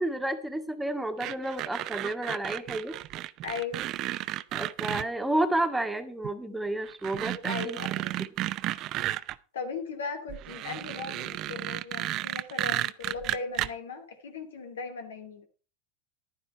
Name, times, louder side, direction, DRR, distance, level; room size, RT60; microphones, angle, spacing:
voice 1, 0.0-2.9 4.5-7.8 8.2-8.3, right 1 dB, 5° right, 8 dB, 1.6 m, -31 dB
sound 1, 1.2-5.0 6.2-6.3 6.8-9.3 10.3-13.7, right 15 dB, 45° right, 0.6 m, -33 dB
voice 2, 3.4-3.8 7.4-8.1 9.5-15.5, left 5 dB, 90° left, 6 dB, 2.6 m, -38 dB
11.0 x 10.0 x 4.4 m, 0.36 s
hypercardioid pair, 110°, 0 cm